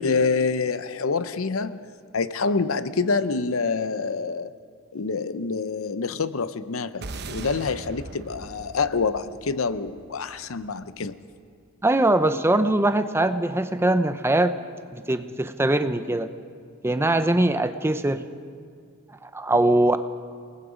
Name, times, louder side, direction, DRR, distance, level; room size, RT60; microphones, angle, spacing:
voice 1, 0.0-4.5 4.9-11.2, left 4 dB, 75° left, 14 dB, 0.7 m, -26 dB
sound 1, 7.0-11.5, right 2 dB, 55° right, 0.9 m, -40 dB
voice 2, 11.8-14.5 14.9-16.3 16.8-18.3 19.2-20.0, right 1 dB, 10° right, 10 dB, 0.7 m, -22 dB
29.0 x 19.0 x 5.1 m, 2.1 s
head